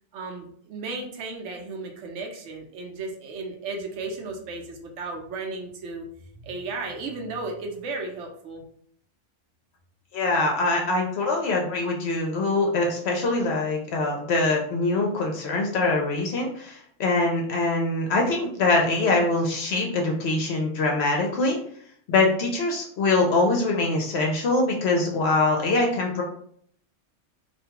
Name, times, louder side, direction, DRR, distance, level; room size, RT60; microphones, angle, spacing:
voice 1, 0.1-6.1 6.4-8.6, right 3 dB, 70° right, 2 dB, 0.9 m, -34 dB
voice 2, 10.1-21.6 22.1-26.2, left 2 dB, 65° left, 1 dB, 0.7 m, -23 dB
2.4 x 2.3 x 2.8 m, 0.63 s
omnidirectional pair, 1.3 m